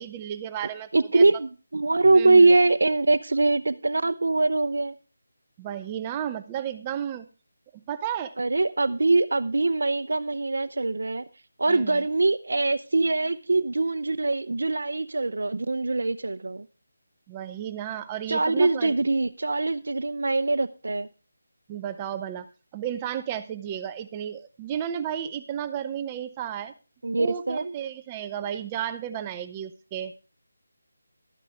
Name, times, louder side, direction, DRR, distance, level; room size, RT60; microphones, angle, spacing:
voice 1, 0.0-1.4 2.1-2.5 5.6-7.3 7.7-8.3 11.7-12.1 17.3-19.1 21.7-22.5 22.7-26.7 27.2-30.1, right 9 dB, 15° right, 10 dB, 0.5 m, -33 dB
voice 2, 0.9-5.0 8.4-11.2 11.6-16.7 18.3-21.1 27.0-27.7, right 3 dB, 75° right, 12 dB, 0.6 m, -23 dB
12.5 x 9.9 x 3.3 m, 0.33 s
figure-of-eight pair, 170°, 0 cm